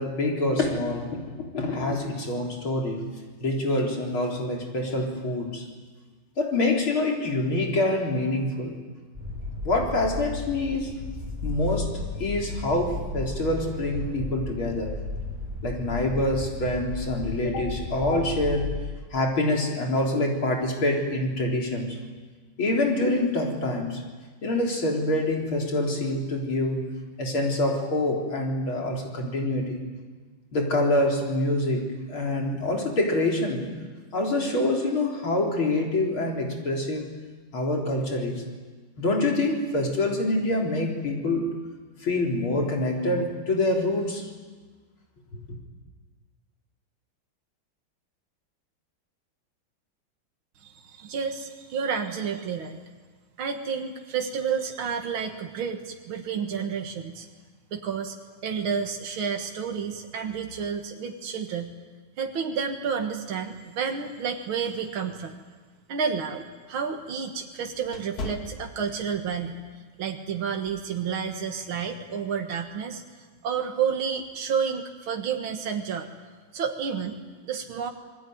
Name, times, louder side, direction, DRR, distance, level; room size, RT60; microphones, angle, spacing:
voice 1, 0.0-3.1 3.4-5.7 6.4-8.8 9.6-10.9 11.4-14.9 15.6-18.7 19.1-22.0 22.6-24.0 24.4-26.8 27.2-29.8 30.5-33.7 34.1-37.1 37.5-38.4 39.0-41.5 42.0-44.3, left 2 dB, 85° left, 0 dB, 4.8 m, -26 dB
sound 1, 9.1-18.8, left 3 dB, 15° right, 6.1 m, -34 dB
voice 2, 50.6-52.8 53.4-57.3 57.7-58.2 58.4-61.8 62.2-65.4 65.9-69.6 70.0-73.0 73.4-76.1 76.5-77.9, right 6 dB, 80° right, 4 dB, 2.4 m, -30 dB
sound 2, 65.7-69.4 69.8-70.1 70.7-70.9, left 2 dB, 50° left, 2.5 m, -40 dB
27.5 x 20.5 x 9.4 m, 1.4 s
omnidirectional pair, 2.2 m